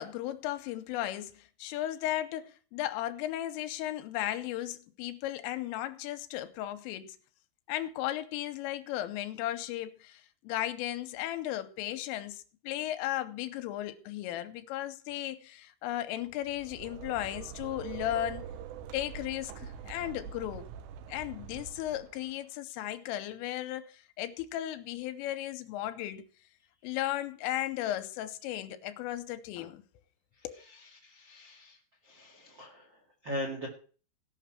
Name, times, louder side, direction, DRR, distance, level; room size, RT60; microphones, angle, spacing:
voice 1, 0.0-7.2 7.7-18.5 18.9-20.7 21.1-26.2 26.8-29.8 30.4-30.6, left 13 dB, 85° left, 3.3 m, -35 dB
sound 1, 16.3-22.3, right 8 dB, 80° right, 2.6 m, -44 dB
voice 2, 30.4-31.8 32.0-33.7, equal, 65° right, 1.1 m, -41 dB
17.0 x 6.0 x 5.8 m
omnidirectional pair, 5.8 m